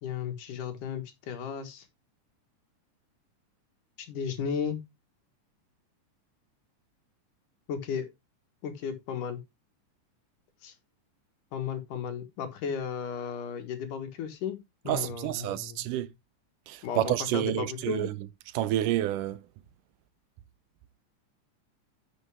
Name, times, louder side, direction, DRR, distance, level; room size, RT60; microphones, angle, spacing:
voice 1, 0.0-1.8 4.0-4.8 7.7-8.1 8.6-9.4 10.6-10.7 11.5-14.6 14.8-15.8 16.8-18.1, left 7 dB, 80° left, 3.1 m, -34 dB
voice 2, 14.9-16.1 16.7-18.2 18.5-19.4, right 13 dB, 80° right, 2.3 m, -29 dB
11.5 x 6.4 x 3.5 m
omnidirectional pair, 3.7 m